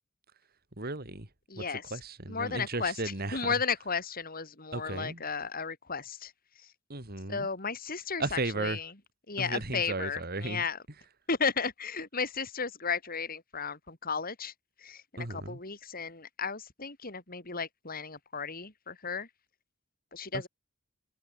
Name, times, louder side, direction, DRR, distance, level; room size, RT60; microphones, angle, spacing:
voice 1, 0.8-1.3 1.6-3.5 4.7-5.2 6.9-7.5 8.2-8.8 9.4-10.6 15.2-15.6, right 2 dB, 50° right, 3.5 m, -35 dB
voice 2, 1.5-1.8 2.3-2.9 3.3-6.3 6.6-6.7 7.3-8.9 9.3-10.8 11.3-14.5 14.8-19.3 20.1-20.5, left 5 dB, 45° left, 5.2 m, -34 dB
head